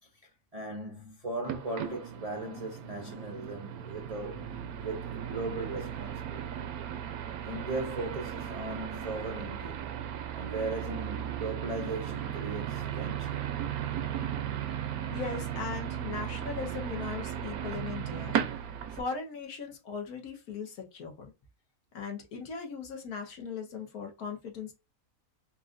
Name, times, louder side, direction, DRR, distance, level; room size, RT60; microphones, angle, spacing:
voice 1, 0.2-6.7 7.4-9.8 10.3-13.6, right 2 dB, 45° right, 0.4 m, -38 dB
sound 1, 1.4-19.0, right 10 dB, 80° right, 1.1 m, -36 dB
voice 2, 15.1-18.4 18.9-21.3 21.9-24.7, left 5 dB, 80° left, 1.6 m, -38 dB
5.6 x 2.5 x 2.5 m
omnidirectional pair, 1.6 m